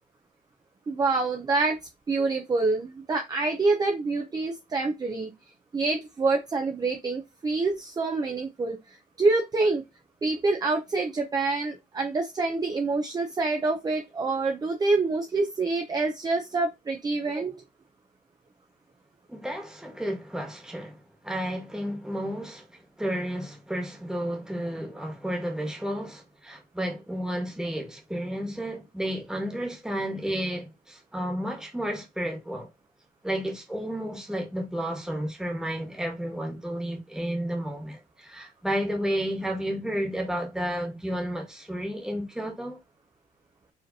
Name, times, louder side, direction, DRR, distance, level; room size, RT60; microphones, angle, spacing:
voice 1, 0.9-1.8 2.1-5.3 5.7-9.8 10.2-17.6, right 3 dB, 25° right, 0.6 m, -26 dB
voice 2, 19.3-32.7 33.2-42.8, equal, 5° right, 1.5 m, -32 dB
4.9 x 3.1 x 2.7 m
cardioid pair, 110°, 17 cm